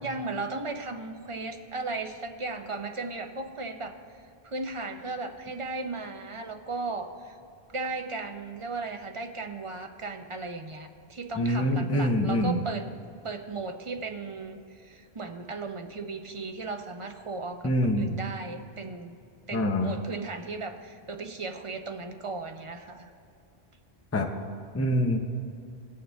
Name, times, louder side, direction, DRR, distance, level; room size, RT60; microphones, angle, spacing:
voice 1, 0.0-4.0 4.4-7.3 7.7-12.9 13.2-19.2 19.5-23.1, right 3 dB, 35° right, 6 dB, 0.6 m, -36 dB
voice 2, 11.4-12.6 17.6-18.1 19.5-19.9 24.1-24.3 24.7-25.2, left 1 dB, 15° left, 4 dB, 0.5 m, -25 dB
17.5 x 6.5 x 3.4 m, 2.5 s
omnidirectional pair, 1.0 m